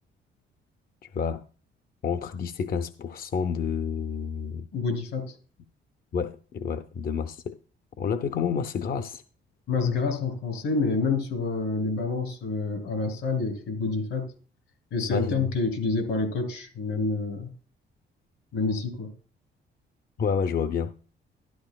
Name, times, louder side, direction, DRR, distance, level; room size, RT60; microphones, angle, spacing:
voice 1, 2.0-4.7 6.1-7.6 8.0-9.2 15.1-15.4 20.2-20.9, left 6 dB, 50° left, 0.6 m, -29 dB
voice 2, 4.7-5.3 9.7-14.3 14.9-17.5 18.5-19.1, left 4 dB, 85° left, 3.2 m, -28 dB
13.0 x 11.5 x 2.3 m
cardioid pair, 90°, 20 cm